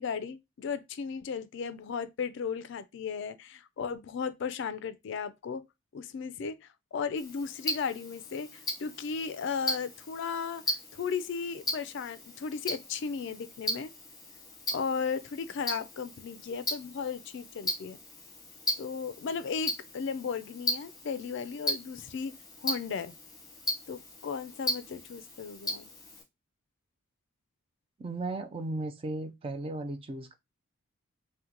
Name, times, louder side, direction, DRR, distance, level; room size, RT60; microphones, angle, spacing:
voice 1, 0.0-5.6 5.9-13.9 14.7-18.0 18.8-22.3 22.6-23.1 23.9-25.9, left 6 dB, 55° left, 0.3 m, -35 dB
Tick-tock, 7.2-26.2, left 1 dB, 15° left, 0.9 m, -37 dB
voice 2, 28.0-30.3, right 2 dB, 25° right, 0.3 m, -36 dB
3.8 x 2.1 x 2.8 m
head